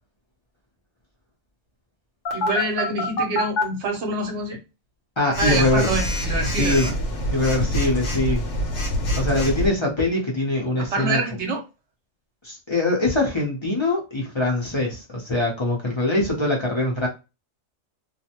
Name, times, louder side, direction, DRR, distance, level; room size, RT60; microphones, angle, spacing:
Telephone, 2.3-3.6 5.3-9.7, left 1 dB, 85° left, 1.1 m, -25 dB
voice 1, 2.3-4.6 5.4-7.0 9.2-9.4 10.7-11.6, right 2 dB, 75° right, 1.0 m, -26 dB
voice 2, 5.2-5.9 6.6-6.9 7.3-8.4 9.2-11.2 12.4-17.1, left 2 dB, 30° left, 0.7 m, -23 dB
2.5 x 2.1 x 2.8 m
omnidirectional pair, 1.2 m